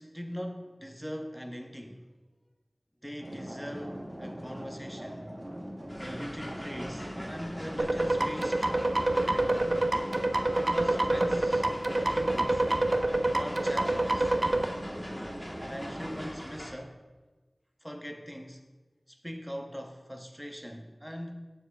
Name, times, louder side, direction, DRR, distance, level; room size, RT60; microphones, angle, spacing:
voice 1, 0.0-2.0 3.0-5.4 6.0-9.6 10.5-12.6 13.3-14.4 15.7-17.0 17.8-18.6 19.1-21.5, equal, ahead, 3 dB, 0.6 m, -41 dB
sound 1, 3.2-16.3, equal, 30° right, 1.0 m, -41 dB
sound 2, 5.9-16.7, equal, 20° left, 1.1 m, -43 dB
sound 3, 7.8-14.6, right 2 dB, 65° right, 0.4 m, -26 dB
7.0 x 6.6 x 2.3 m, 1.2 s
wide cardioid pair, 45°, 0 cm